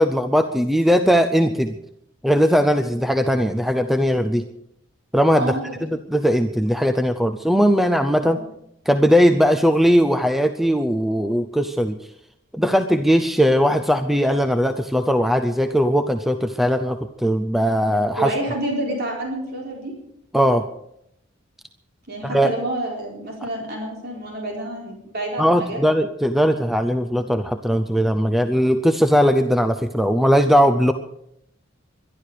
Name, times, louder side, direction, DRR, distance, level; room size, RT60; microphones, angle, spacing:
voice 1, 0.0-1.8 2.2-4.5 5.1-5.5 6.1-8.4 8.9-12.0 12.5-18.3 20.3-20.7 22.2-22.5 25.4-30.9, equal, ahead, 8 dB, 0.6 m, -19 dB
voice 2, 5.3-5.8 8.2-8.4 18.2-19.9 22.1-25.8, right 1 dB, 55° right, -2 dB, 4.1 m, -28 dB
22.5 x 12.0 x 4.9 m, 0.77 s
head